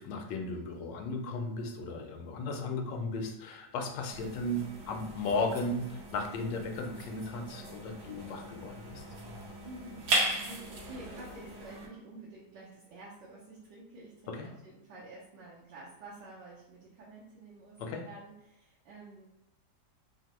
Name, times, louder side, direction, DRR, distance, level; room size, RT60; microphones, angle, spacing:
voice 1, 0.0-9.0 14.3-14.5 17.8-18.0, left 2 dB, 85° left, 4 dB, 1.2 m, -35 dB
sound 1, 4.1-11.9, right 2 dB, 75° right, 1.4 m, -37 dB
voice 2, 9.6-19.3, right 2 dB, 90° right, -6 dB, 1.4 m, -50 dB
3.6 x 2.0 x 2.9 m, 0.88 s
omnidirectional pair, 1.9 m